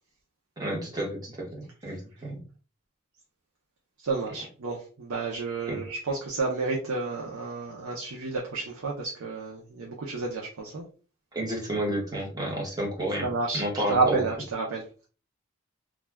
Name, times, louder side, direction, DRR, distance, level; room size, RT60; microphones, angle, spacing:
voice 1, 0.6-2.4 5.7-5.8 11.3-13.3 13.5-14.2, right 1 dB, 20° right, -2 dB, 0.9 m, -31 dB
voice 2, 4.0-10.8 13.2-15.1, right 3 dB, 90° right, -2 dB, 0.6 m, -30 dB
2.4 x 2.2 x 3.2 m, 0.38 s
head